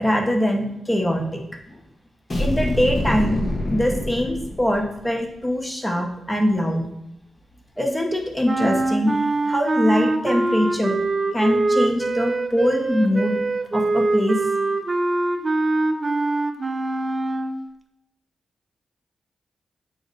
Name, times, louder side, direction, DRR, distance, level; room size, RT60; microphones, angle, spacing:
voice 1, 0.0-1.4 1.7-1.8 2.4-3.4 3.7-6.9 7.8-11.0 11.3-13.4 13.7-14.4, equal, 10° left, 2 dB, 0.7 m, -22 dB
sound 1, 2.3-5.1, left 1 dB, 40° left, 0.8 m, -26 dB
sound 2, 8.5-17.6, right 2 dB, 35° right, 0.4 m, -23 dB
5.0 x 2.1 x 3.8 m, 0.77 s
cardioid pair, 65°, 0 cm